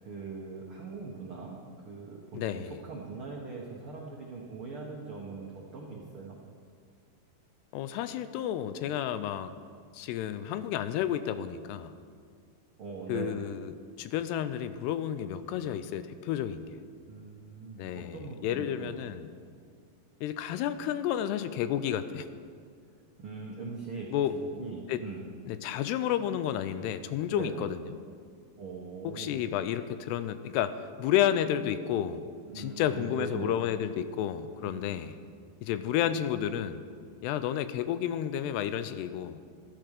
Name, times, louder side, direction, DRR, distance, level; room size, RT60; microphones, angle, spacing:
voice 1, 0.0-6.4 12.8-13.4 17.1-19.0 23.2-25.2 27.3-27.6 28.6-29.4 32.5-33.6 34.6-34.9, right 4 dB, 85° right, -2 dB, 1.2 m, -41 dB
voice 2, 2.3-2.7 7.7-9.5 9.9-11.9 13.1-16.8 17.8-19.3 20.2-22.3 24.1-24.3 24.9-25.0 25.5-27.8 29.0-32.2 32.6-35.2 35.6-36.9 37.2-39.4, left 10 dB, 80° left, 12 dB, 2.7 m, -31 dB
14.0 x 12.5 x 6.6 m, 2.1 s
omnidirectional pair, 4.8 m